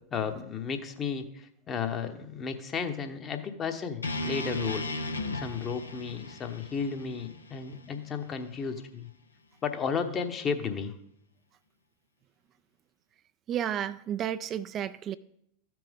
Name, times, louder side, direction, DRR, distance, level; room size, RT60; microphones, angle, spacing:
voice 1, 0.1-4.9 5.3-9.1 9.6-10.9, left 6 dB, 30° left, 7 dB, 1.0 m, -33 dB
sound 1, 4.0-8.2, left 1 dB, 85° left, 0.7 m, -36 dB
voice 2, 13.5-15.2, right 10 dB, 35° right, 12 dB, 0.3 m, -32 dB
13.5 x 6.0 x 3.6 m, 0.75 s
figure-of-eight pair, 90°, 0 cm